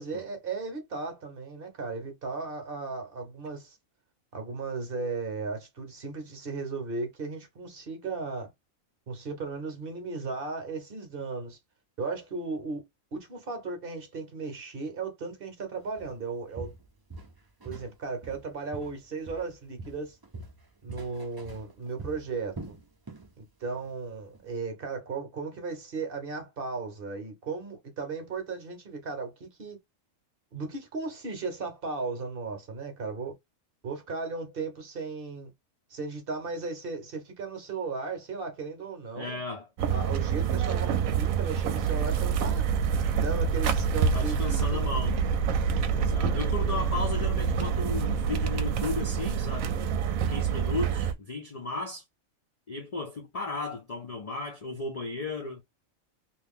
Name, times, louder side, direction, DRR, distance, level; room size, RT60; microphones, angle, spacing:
voice 1, 0.0-3.8 4.3-8.5 9.1-11.6 12.0-12.8 13.1-16.7 17.6-20.2 20.8-22.8 23.4-29.8 30.5-33.3 33.8-35.5 35.9-39.4 39.9-42.7 43.2-44.9, right 4 dB, 50° right, 0.9 m, -36 dB
Walk footsteps, 16.0-16.2 16.6-17.9 18.2-19.5 19.8-23.3 23.6-23.9 24.3-24.4, right 2 dB, 25° right, 0.5 m, -43 dB
voice 2, 39.2-39.7 44.0-45.2 45.9-49.7 50.3-52.0 52.7-55.6, left 3 dB, 60° left, 0.4 m, -35 dB
sound 1, 39.8-51.1, right 6 dB, 80° right, 1.0 m, -27 dB
2.8 x 2.5 x 3.5 m
omnidirectional pair, 1.4 m